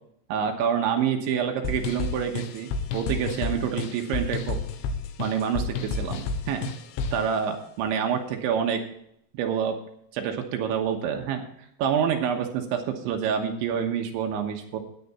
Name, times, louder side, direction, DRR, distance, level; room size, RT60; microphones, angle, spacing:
voice 1, 0.3-4.6 5.2-6.7 7.1-8.8 9.3-9.8 10.1-11.5 11.8-14.8, right 8 dB, 75° right, 4 dB, 3.4 m, -27 dB
sound 1, 1.6-7.3, left 4 dB, 75° left, 3.2 m, -31 dB
13.5 x 10.0 x 4.3 m, 0.73 s
omnidirectional pair, 5.7 m